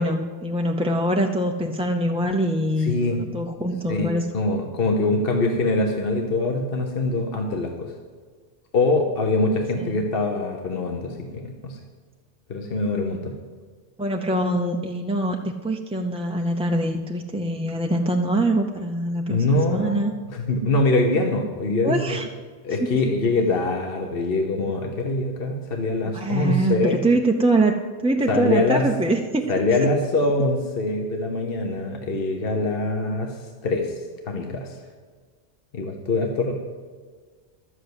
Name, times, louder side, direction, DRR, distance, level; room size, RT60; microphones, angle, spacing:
voice 1, 0.0-4.3 9.8-10.0 14.0-20.1 21.8-22.3 22.8-23.0 26.0-27.7 28.0-29.4, right 1 dB, 10° right, 2 dB, 0.4 m, -24 dB
voice 2, 2.8-3.2 3.9-7.9 8.7-11.8 12.5-13.3 19.3-20.0 20.3-22.2 22.6-27.0 28.3-28.8 29.5-33.9 34.3-34.8 35.7-36.5, left 2 dB, 60° left, 3 dB, 1.3 m, -23 dB
12.0 x 8.0 x 8.0 m, 1.6 s
omnidirectional pair, 1.1 m